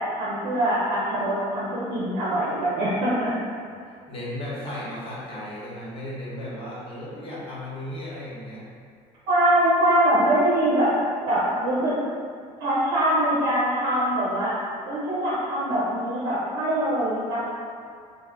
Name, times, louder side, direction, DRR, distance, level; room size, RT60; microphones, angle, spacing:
voice 1, 0.0-3.3 9.3-10.9 11.3-11.9 12.6-14.5 14.9-17.4, right 1 dB, 80° right, -8 dB, 0.6 m, -23 dB
voice 2, 4.1-8.6, left 1 dB, 40° left, -7 dB, 1.0 m, -35 dB
2.1 x 2.1 x 3.5 m, 2.1 s
supercardioid pair, 95°, 15 cm